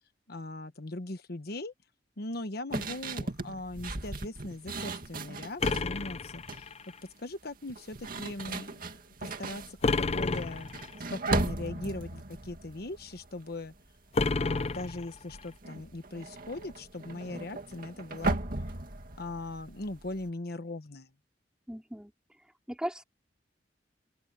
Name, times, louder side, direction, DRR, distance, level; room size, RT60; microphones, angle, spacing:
voice 1, 0.3-1.7 2.2-6.7 7.2-10.7 11.1-13.7 14.4-18.4 19.2-21.1, left 2 dB, 60° left, 1.2 m, -39 dB
sound 1, 2.7-5.9 6.3-6.7 7.6-13.9 14.1-14.5 14.8-20.3, right 2 dB, 55° right, 2.3 m, -37 dB
sound 2, 5.6-7.0 9.8-11.0 14.1-15.5, left 3 dB, 35° left, 0.5 m, -30 dB
voice 2, 21.7-22.1 22.7-23.0, equal, 5° right, 3.9 m, -37 dB
open air
head